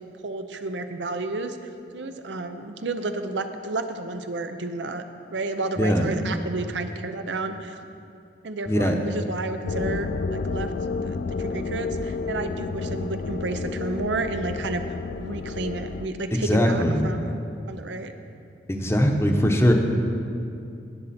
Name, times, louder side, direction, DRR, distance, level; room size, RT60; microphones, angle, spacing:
voice 1, 0.2-5.0 5.3-7.8 8.4-10.7 11.0-17.4 17.7-18.1, right 3 dB, 85° right, 8 dB, 0.7 m, -31 dB
voice 2, 8.7-9.0 16.5-17.0 18.7-19.7, equal, 15° left, 3 dB, 0.8 m, -20 dB
sound 1, 9.7-16.1, left 4 dB, 55° left, 0.3 m, -30 dB
18.0 x 6.7 x 4.3 m, 2.5 s
head